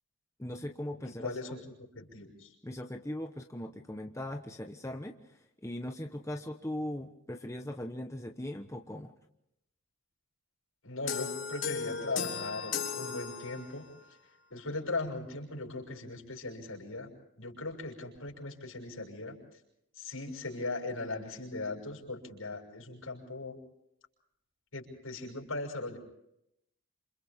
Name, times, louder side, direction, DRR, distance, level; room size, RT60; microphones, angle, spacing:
voice 1, 0.4-1.4 2.6-9.1, left 1 dB, 15° left, 4 dB, 1.0 m, -39 dB
voice 2, 1.0-1.6 1.9-2.5 10.8-13.9 14.5-17.1 17.4-19.4 19.9-23.6 24.7-26.0, left 2 dB, 75° left, 1 dB, 6.6 m, -39 dB
sound 1, 11.1-13.9, left 6 dB, 60° left, 3.7 m, -36 dB
28.5 x 28.0 x 3.6 m, 0.80 s
head